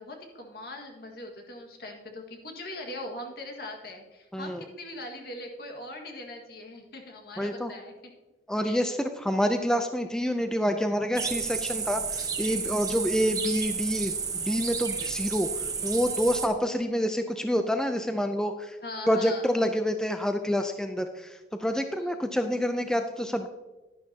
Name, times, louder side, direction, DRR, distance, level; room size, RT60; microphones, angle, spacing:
voice 1, 0.0-7.9 8.6-8.9 18.8-19.5 22.0-22.1, left 1 dB, 60° left, 2 dB, 1.8 m, -41 dB
voice 2, 4.3-4.6 7.4-7.7 8.5-18.8 19.1-23.5, equal, 5° left, 7 dB, 0.4 m, -27 dB
sound 1, 11.2-16.5, right 6 dB, 20° right, 1.0 m, -31 dB
11.0 x 10.5 x 2.8 m, 1.1 s
head